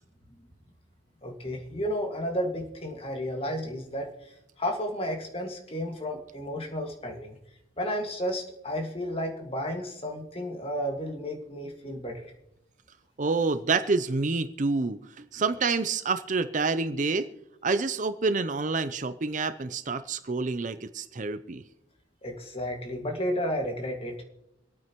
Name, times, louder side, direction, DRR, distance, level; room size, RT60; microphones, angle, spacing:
voice 1, 1.2-7.4 7.8-12.3 22.2-24.2, equal, 30° left, 2 dB, 1.9 m, -32 dB
voice 2, 13.2-17.3 17.6-21.6, right 4 dB, 40° right, 11 dB, 0.5 m, -28 dB
26.5 x 9.1 x 3.0 m, 0.84 s
head